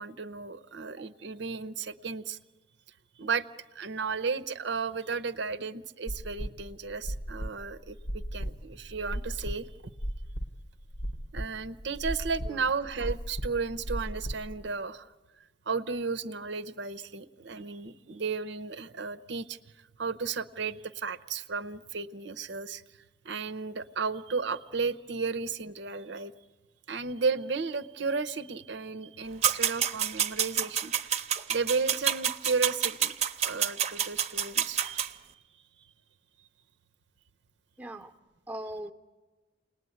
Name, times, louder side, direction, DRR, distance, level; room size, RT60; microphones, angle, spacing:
voice 1, 0.0-2.4 3.2-3.5 3.7-9.7 11.3-15.1 15.7-19.6 20.0-22.8 23.2-26.3 26.9-31.2 31.5-33.1 33.4-35.2, right 4 dB, 65° right, 10 dB, 0.8 m, -34 dB
sound 1, 6.1-14.7, equal, 80° left, 1.3 m, -36 dB
sound 2, 29.4-35.1, right 9 dB, 35° right, 0.8 m, -28 dB
voice 2, 37.8-38.1 38.5-38.9, right 1 dB, 10° right, 5 dB, 0.9 m, -40 dB
29.0 x 19.5 x 9.4 m, 1.3 s
head